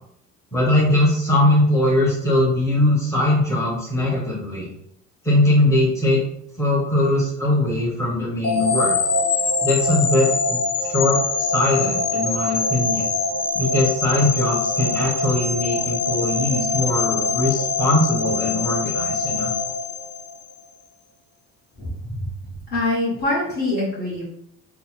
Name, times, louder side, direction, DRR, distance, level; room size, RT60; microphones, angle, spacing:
voice 1, 0.5-4.7 5.2-6.2 6.6-8.9 9.6-13.1 13.5-19.5, left 1 dB, 10° left, -6 dB, 1.2 m, -21 dB
sound 1, 8.4-20.6, left 3 dB, 55° left, 0.7 m, -23 dB
voice 2, 21.8-22.3 22.7-24.2, left 2 dB, 35° left, -8 dB, 1.4 m, -24 dB
3.9 x 2.2 x 4.3 m, 0.71 s
cardioid pair, 125°, 29 cm